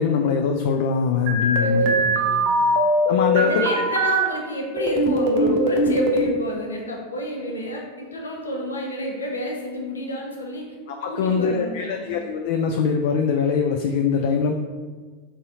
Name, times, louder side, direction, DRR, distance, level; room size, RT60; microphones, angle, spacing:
voice 1, 0.0-2.0 3.1-3.7 11.0-14.5, left 6 dB, 60° left, 3 dB, 0.3 m, -22 dB
sound 1, 1.3-4.3 4.8-6.4, equal, 50° right, 0.6 m, -21 dB
voice 2, 1.6-2.6 3.3-10.7 11.1-12.1, equal, 80° left, 0 dB, 0.7 m, -30 dB
4.0 x 3.7 x 2.8 m, 1.4 s
figure-of-eight pair, 85°, 0 cm